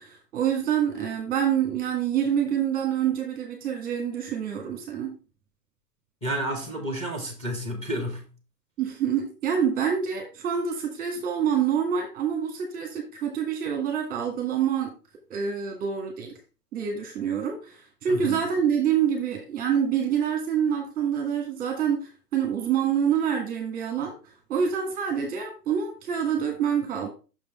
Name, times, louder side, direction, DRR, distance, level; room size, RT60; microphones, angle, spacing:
voice 1, 0.0-5.1 8.8-14.9 15.3-16.3 16.7-27.1, right 8 dB, 20° right, 1.3 m, -26 dB
voice 2, 6.2-8.2 18.1-18.4, equal, 10° left, 1.4 m, -31 dB
6.1 x 5.3 x 4.1 m
figure-of-eight pair, 120°, 48 cm